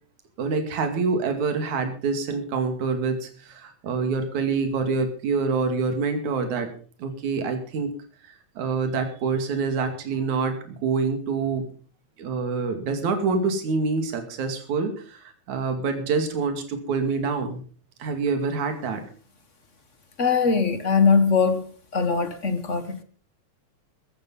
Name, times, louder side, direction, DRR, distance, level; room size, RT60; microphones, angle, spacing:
voice 1, 0.4-6.7 7.0-7.9 8.6-11.7 12.2-17.6 18.0-19.0, right 4 dB, 75° right, 3.7 m, -26 dB
voice 2, 20.2-21.6 21.9-23.0, left 5 dB, 40° left, 1.1 m, -21 dB
15.0 x 12.5 x 5.5 m
omnidirectional pair, 3.5 m